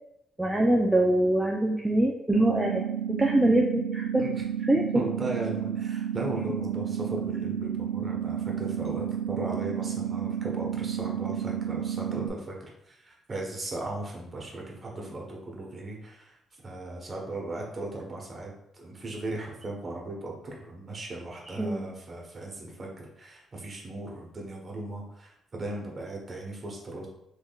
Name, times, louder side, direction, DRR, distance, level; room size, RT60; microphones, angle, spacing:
voice 1, 0.4-4.3 4.6-5.0 21.4-21.9, right 1 dB, 15° right, 0 dB, 0.3 m, -24 dB
sound 1, 2.3-12.3, right 9 dB, 75° right, 0.4 m, -31 dB
voice 2, 4.9-12.6 12.9-16.4 16.6-27.1, right 2 dB, 35° right, -1 dB, 1.0 m, -37 dB
3.5 x 3.2 x 2.3 m, 0.80 s
cardioid pair, 90°, 0 cm